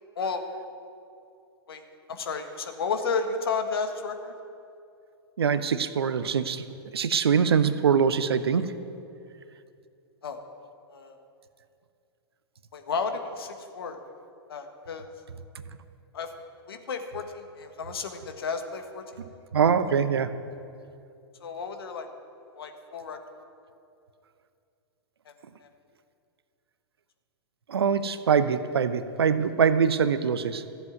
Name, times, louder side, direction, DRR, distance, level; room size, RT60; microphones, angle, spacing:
voice 1, 2.1-4.3 10.2-10.4 10.9-11.2 12.7-14.0 14.5-15.1 16.1-16.3 16.7-19.0 21.4-22.1 22.5-23.2 25.2-25.3 25.6-25.7, left 5 dB, 70° left, 6 dB, 1.6 m, -32 dB
voice 2, 5.4-6.7 6.9-8.7 19.5-20.4 27.7-30.6, right 6 dB, 70° right, 13 dB, 0.8 m, -23 dB
14.5 x 8.0 x 9.3 m, 2.6 s
figure-of-eight pair, 105°, 13 cm